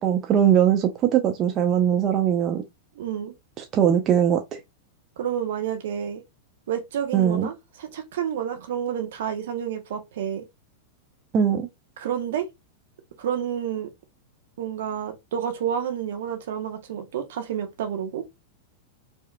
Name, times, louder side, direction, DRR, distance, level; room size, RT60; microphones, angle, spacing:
voice 1, 0.0-2.6 3.6-4.4 7.1-7.5 11.3-11.7, right 9 dB, 35° right, 0.6 m, -20 dB
voice 2, 2.9-3.3 5.2-6.2 6.7-10.4 12.0-12.5 13.2-13.9 14.6-18.2, right 9 dB, 60° right, 1.0 m, -29 dB
4.7 x 2.8 x 2.3 m
figure-of-eight pair, 95°, 0 cm